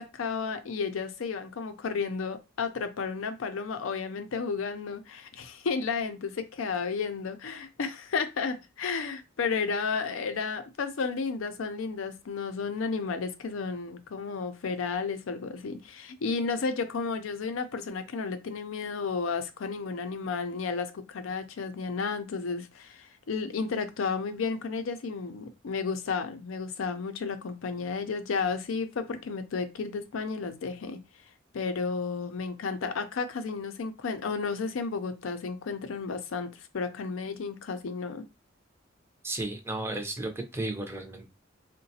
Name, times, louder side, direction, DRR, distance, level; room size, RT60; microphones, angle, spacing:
voice 1, 0.0-31.0 31.5-38.2, left 5 dB, 80° left, 0.5 m, -32 dB
voice 2, 39.2-41.3, right 2 dB, 10° right, 0.5 m, -34 dB
3.8 x 2.1 x 2.7 m
head